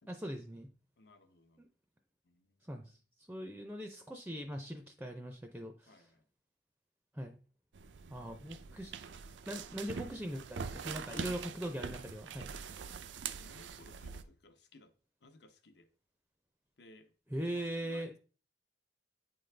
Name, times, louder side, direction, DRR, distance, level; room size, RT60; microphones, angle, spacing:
voice 1, 0.1-0.7 1.6-1.7 2.6-3.0 3.3-6.0 7.1-7.3 8.1-9.0 9.5-12.5 17.3-18.1, equal, 10° right, 0.5 m, -41 dB
voice 2, 1.0-1.6 2.2-3.0 5.9-6.3 11.1-11.2 12.7-13.0 13.3-14.9 15.2-15.9 16.8-17.1 17.5-18.2, left 2 dB, 65° left, 0.8 m, -60 dB
sound 1, 7.7-14.2, right 6 dB, 90° right, 0.5 m, -44 dB
9.0 x 3.9 x 3.3 m
head